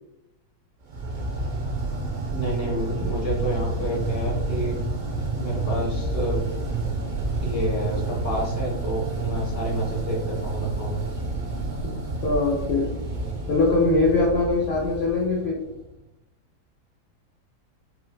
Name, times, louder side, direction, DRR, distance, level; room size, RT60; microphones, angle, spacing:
sound 1, 0.9-15.9, right 3 dB, 85° right, 1.4 m, -29 dB
voice 1, 2.3-4.8 5.4-6.4 7.4-11.0, equal, 25° right, -6 dB, 0.3 m, -29 dB
voice 2, 12.2-12.9 13.5-15.6, left 3 dB, 90° left, -2 dB, 0.5 m, -22 dB
3.9 x 2.1 x 2.2 m, 0.87 s
omnidirectional pair, 1.8 m